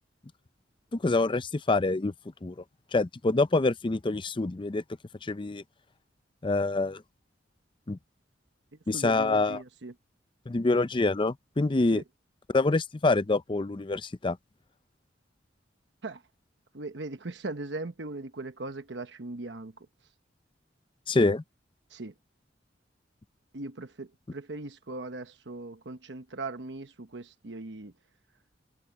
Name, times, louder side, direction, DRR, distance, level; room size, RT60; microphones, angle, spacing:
voice 1, 0.9-2.1 2.4-2.5 2.9-4.8 5.2-5.6 6.4-7.0 7.9-8.0 8.9-9.6 10.5-12.0 12.5-14.4 21.1-21.4, left 3 dB, 25° left, 0.5 m, -26 dB
voice 2, 8.9-9.9 11.9-12.0 16.0-16.2 16.7-19.9 21.9-22.1 23.5-27.9, right 2 dB, 70° right, 1.1 m, -39 dB
head